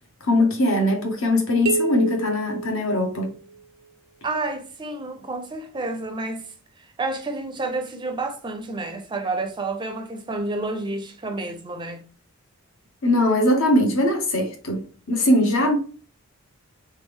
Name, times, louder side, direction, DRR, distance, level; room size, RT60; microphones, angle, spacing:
voice 1, 0.2-3.3 13.0-15.8, left 1 dB, 65° left, 1.0 m, -21 dB
sound 1, 1.7-3.6, right 4 dB, 80° right, 0.4 m, -29 dB
voice 2, 4.2-6.5 7.0-12.0 14.4-14.5, right 2 dB, 20° right, 0.4 m, -30 dB
3.4 x 3.2 x 3.5 m
head